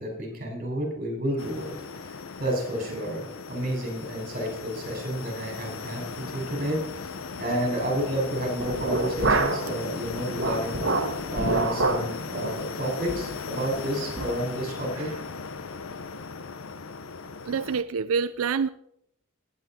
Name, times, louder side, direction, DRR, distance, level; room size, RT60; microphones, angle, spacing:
voice 1, 0.0-7.1 7.4-10.8 11.3-15.1, equal, 40° right, 0 dB, 5.1 m, -31 dB
sound 1, 1.4-17.8, left 4 dB, 75° left, 0.7 m, -37 dB
sound 2, 8.6-9.7 10.1-12.1 12.4-12.6 13.1-13.3 13.7-13.8 14.2-14.4, right 2 dB, 60° right, 1.5 m, -27 dB
voice 2, 17.4-18.7, right 6 dB, 90° right, 12 dB, 0.4 m, -27 dB
17.0 x 9.3 x 4.3 m, 0.74 s
head